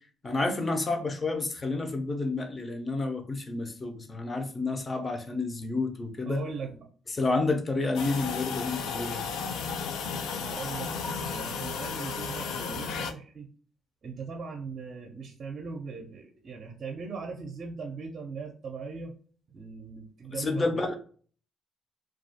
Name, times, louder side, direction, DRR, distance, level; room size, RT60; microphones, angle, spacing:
voice 1, 0.2-6.4 7.1-9.3 20.4-21.0, left 3 dB, 30° left, 5 dB, 0.5 m, -30 dB
voice 2, 6.3-6.9 9.0-9.3 10.4-13.5 14.0-19.1 19.5-21.0, right 4 dB, 50° right, 1 dB, 0.5 m, -39 dB
sound 1, 7.9-13.1, left 5 dB, 90° left, 0.3 m, -34 dB
2.3 x 2.3 x 2.7 m, 0.43 s
cardioid pair, 90°, 0 cm